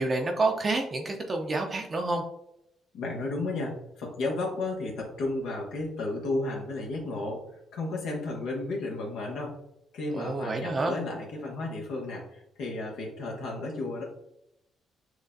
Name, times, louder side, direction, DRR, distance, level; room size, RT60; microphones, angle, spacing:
voice 1, 0.0-2.2 10.1-11.0, right 2 dB, 30° right, 2 dB, 0.5 m, -28 dB
voice 2, 2.9-7.4 7.7-9.5 9.9-14.0, left 2 dB, 85° left, -2 dB, 1.0 m, -33 dB
6.3 x 2.4 x 2.5 m, 0.81 s
cardioid pair, 120°, 0 cm